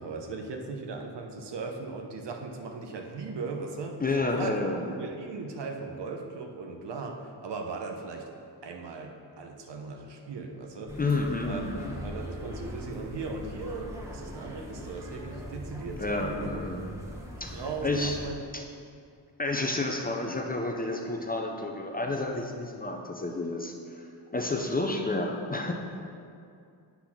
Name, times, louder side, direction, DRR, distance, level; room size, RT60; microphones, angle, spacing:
voice 1, 0.0-4.0 4.3-4.5 5.0-8.3 8.6-11.0 11.4-11.6 12.0-16.5 17.5-18.3, right 4 dB, 70° right, 3 dB, 0.9 m, -38 dB
voice 2, 4.0-4.8 11.0-11.9 16.0-16.8 17.4-18.2 18.5-18.6 19.4-24.1 24.3-25.7, left 2 dB, 20° left, 2 dB, 0.4 m, -30 dB
sound 1, 10.9-18.3, equal, 5° right, 1.0 m, -41 dB
8.3 x 4.0 x 5.9 m, 2.4 s
wide cardioid pair, 145°, 44 cm